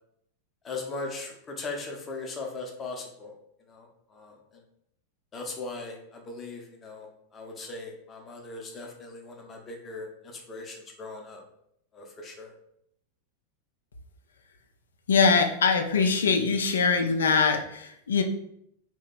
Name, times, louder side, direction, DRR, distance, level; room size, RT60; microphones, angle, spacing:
voice 1, 0.6-3.3 3.7-4.6 5.3-11.4 11.9-12.5, left 3 dB, 20° left, 1 dB, 0.7 m, -39 dB
voice 2, 15.1-18.2, left 5 dB, 65° left, 5 dB, 0.4 m, -23 dB
2.9 x 2.1 x 4.1 m, 0.74 s
figure-of-eight pair, 90°, 0 cm